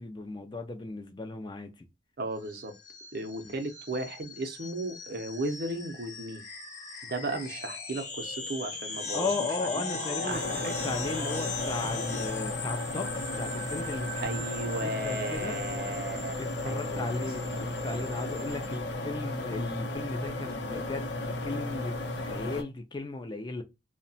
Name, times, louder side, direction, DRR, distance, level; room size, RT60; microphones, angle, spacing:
voice 1, 0.0-1.9 3.4-3.5 9.1-14.5 14.8-15.6 16.3-23.6, left 3 dB, 25° left, 0.4 m, -36 dB
voice 2, 2.2-2.7 3.1-6.4 7.0-9.3 9.7-9.8 10.2-10.8 14.2-16.4 16.6-17.3 17.9-18.3, right 2 dB, 55° right, 0.5 m, -35 dB
sound 1, 2.4-18.7, left 3 dB, 40° left, 0.9 m, -39 dB
sound 2, 10.3-22.6, left 2 dB, 70° left, 0.7 m, -35 dB
2.7 x 2.1 x 2.6 m
head